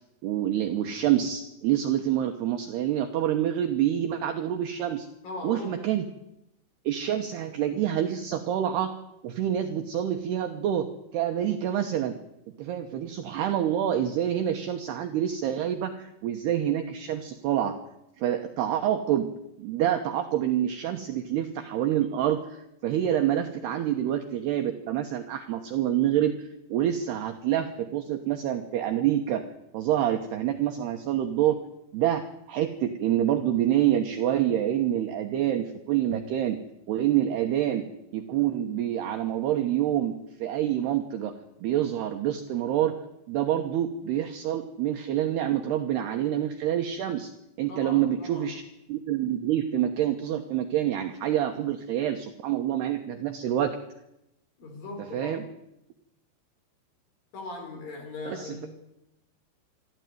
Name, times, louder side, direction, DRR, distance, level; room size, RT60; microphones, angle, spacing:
voice 1, 0.2-5.1 5.4-6.1 6.9-8.9 9.2-10.9 11.1-12.2 12.6-17.8 18.2-19.3 19.6-29.4 29.7-31.6 31.9-36.6 36.9-37.9 38.1-41.3 41.6-43.0 43.3-47.3 47.6-48.6 48.9-53.8 55.1-55.4 58.3-58.7, right 11 dB, 75° right, 5 dB, 2.5 m, -27 dB
voice 2, 5.2-5.9 23.7-23.9 47.7-48.5 54.6-55.4 57.3-58.7, left 2 dB, 45° left, 5 dB, 5.3 m, -39 dB
25.5 x 13.5 x 9.4 m, 0.87 s
omnidirectional pair, 6.0 m